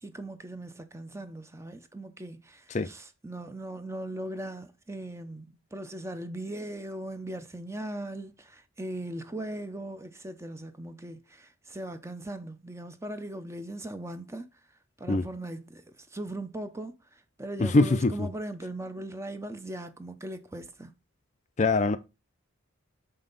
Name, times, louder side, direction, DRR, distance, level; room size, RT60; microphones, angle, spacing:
voice 1, 0.0-14.5 15.0-20.9, right 1 dB, 15° right, 0.6 m, -39 dB
voice 2, 17.6-18.1 21.6-22.0, left 2 dB, 35° left, 0.4 m, -22 dB
6.7 x 5.5 x 3.9 m
head